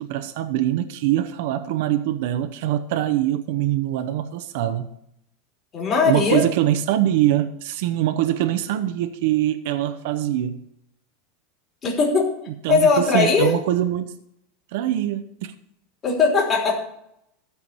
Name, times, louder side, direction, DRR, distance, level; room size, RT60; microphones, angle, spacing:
voice 1, 0.0-4.9 6.0-10.6 12.6-12.9 13.1-14.2 14.7-15.5, right 13 dB, 65° right, 0.8 m, -23 dB
voice 2, 5.7-6.5 11.8-12.3 12.7-13.5 16.0-16.8, left 4 dB, 25° left, 3.6 m, -19 dB
14.0 x 4.7 x 8.2 m
supercardioid pair, 145°, 0 cm